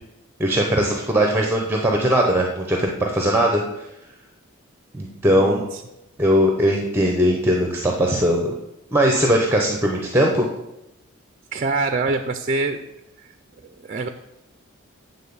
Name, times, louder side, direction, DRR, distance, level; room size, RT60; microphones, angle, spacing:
voice 1, 0.4-3.6 4.9-5.6 6.2-8.5 8.9-10.5, equal, 10° right, 1 dB, 0.7 m, -19 dB
voice 2, 5.3-5.8 11.5-12.8 13.6-14.1, right 3 dB, 35° right, 8 dB, 0.4 m, -25 dB
9.0 x 3.9 x 6.9 m, 0.92 s
head